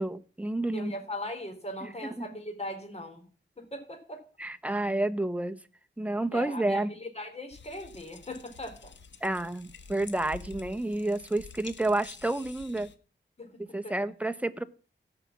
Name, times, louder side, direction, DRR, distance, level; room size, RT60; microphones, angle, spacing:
voice 1, 0.0-0.9 1.8-1.9 2.2-2.3 4.4-5.6 6.0-6.9 9.2-12.9 13.6-14.6, right 2 dB, 5° right, 8 dB, 0.9 m, -30 dB
voice 2, 0.7-3.2 3.6-4.2 6.3-8.9 13.4-13.5 13.8-13.9, left 1 dB, 35° left, 4 dB, 3.9 m, -39 dB
sound 1, 7.5-13.0, left 5 dB, 75° left, 1.1 m, -49 dB
16.0 x 5.9 x 7.3 m, 0.39 s
wide cardioid pair, 85°, 19 cm